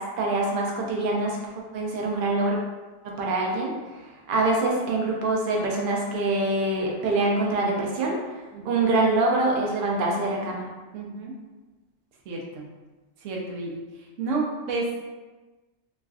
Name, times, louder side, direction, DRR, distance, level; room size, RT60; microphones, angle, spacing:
voice 1, 0.0-1.4 1.7-2.6 3.0-8.2 8.6-10.7, right 2 dB, 55° right, -1 dB, 0.6 m, -25 dB
voice 2, 8.5-8.9 10.9-11.4 12.3-12.7 13.2-13.8 14.2-15.1, right 3 dB, 90° right, -2 dB, 1.0 m, -31 dB
3.1 x 2.5 x 2.3 m, 1.2 s
omnidirectional pair, 1.3 m